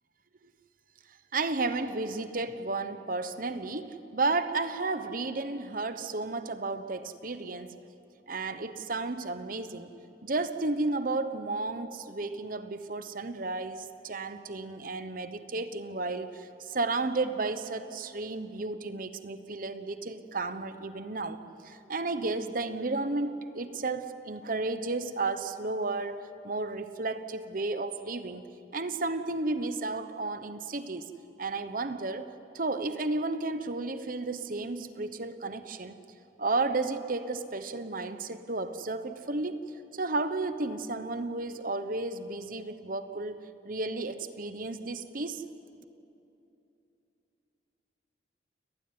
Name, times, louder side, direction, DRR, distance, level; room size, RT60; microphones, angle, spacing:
voice 1, 1.3-7.8 8.3-9.9 10.2-21.4 21.6-28.4 28.7-31.1 31.4-32.3 32.5-36.0 36.4-39.6 39.9-45.4, right 3 dB, 50° right, 10 dB, 1.1 m, -33 dB
29.5 x 19.5 x 9.5 m, 2.9 s
head